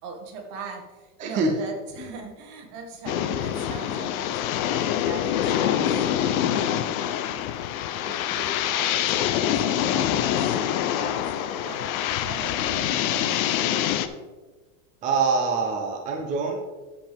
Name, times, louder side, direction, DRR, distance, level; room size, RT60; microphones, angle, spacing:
voice 1, 0.0-7.5 8.0-11.9 12.2-13.8, right 3 dB, 55° right, 1 dB, 2.0 m, -40 dB
sound 1, 3.1-14.1, left 10 dB, 70° left, 0.8 m, -25 dB
voice 2, 15.0-16.6, right 4 dB, 20° right, 2 dB, 0.4 m, -24 dB
13.5 x 5.2 x 3.5 m, 1.3 s
supercardioid pair, 160°, 44 cm